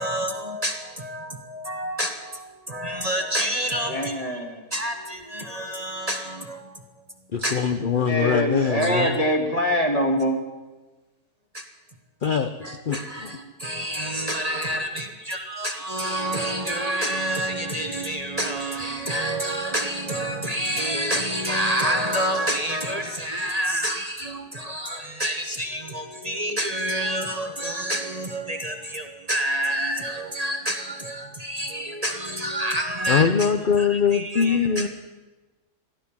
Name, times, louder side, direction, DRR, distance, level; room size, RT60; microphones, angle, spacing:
voice 1, 0.0-4.2 4.7-7.0 7.4-7.6 8.8-9.1 11.5-11.6 12.6-33.5 33.8-34.9, right 1 dB, 25° right, 5 dB, 1.2 m, -28 dB
voice 2, 3.9-4.7 8.1-10.4, equal, 25° left, 3 dB, 2.0 m, -24 dB
voice 3, 7.3-9.1 12.2-13.3 33.1-34.9, left 6 dB, 50° left, 8 dB, 0.6 m, -23 dB
16.0 x 12.0 x 7.3 m, 1.2 s
omnidirectional pair, 1.7 m